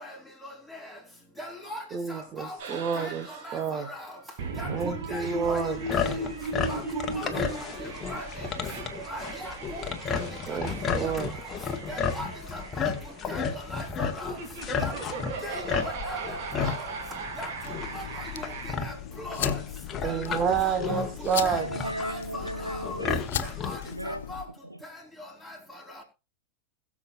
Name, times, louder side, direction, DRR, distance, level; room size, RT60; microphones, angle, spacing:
voice 1, 1.4-1.8 2.4-2.5 3.0-3.1 3.9-4.0 4.6-4.7 5.1-5.6 5.9-6.1 6.7-6.8 7.2-7.4 8.1-8.2 9.1-10.2 10.5-10.6 11.0-11.1 11.9-12.6 13.3-13.4 13.7-14.4 14.8-14.9 15.4-15.6 16.1-16.2 16.6-16.8 17.4-17.5 17.9-18.0 18.8-18.9 19.2-19.6 20.0-21.1 21.4-22.2 22.7-22.8 23.6-23.8 24.3-24.4, left 1 dB, 5° right, 4.4 m, -38 dB
voice 2, 1.9-3.3 3.5-3.9 4.7-5.8 10.5-11.3 20.0-21.7, right 7 dB, 30° right, 1.3 m, -29 dB
sound 1, 2.6-18.7, right 4 dB, 50° right, 2.8 m, -38 dB
sound 2, 5.4-23.9, left 6 dB, 25° left, 1.5 m, -33 dB
sound 3, 17.6-24.5, left 11 dB, 60° left, 0.6 m, -38 dB
voice 3, 21.6-23.2 23.9-24.2, right 1 dB, 85° right, 0.8 m, -35 dB
21.0 x 7.3 x 2.5 m
figure-of-eight pair, 90°, 0 cm